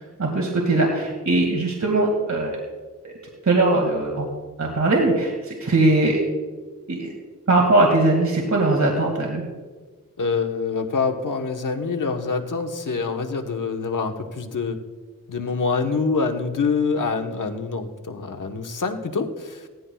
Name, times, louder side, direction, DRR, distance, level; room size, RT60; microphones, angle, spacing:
voice 1, 0.2-2.6 3.0-3.2 3.5-4.3 4.6-6.2 6.9-7.1 7.5-9.4, right 2 dB, 55° right, 0 dB, 2.2 m, -20 dB
voice 2, 10.2-14.8 15.3-19.7, left 4 dB, 65° left, 5 dB, 1.2 m, -25 dB
18.0 x 14.5 x 2.3 m, 1.4 s
cardioid pair, 50°, 33 cm